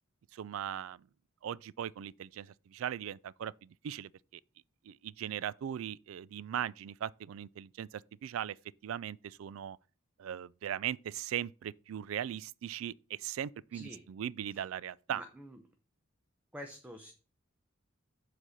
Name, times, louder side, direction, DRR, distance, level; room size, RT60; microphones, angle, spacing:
voice 1, 0.3-1.1 1.4-4.4 4.8-8.6 8.8-9.8 10.2-15.2, right 10 dB, 80° right, 0.3 m, -39 dB
voice 2, 15.1-15.6 16.5-17.1, equal, 10° right, 0.7 m, -47 dB
7.4 x 4.1 x 6.4 m
head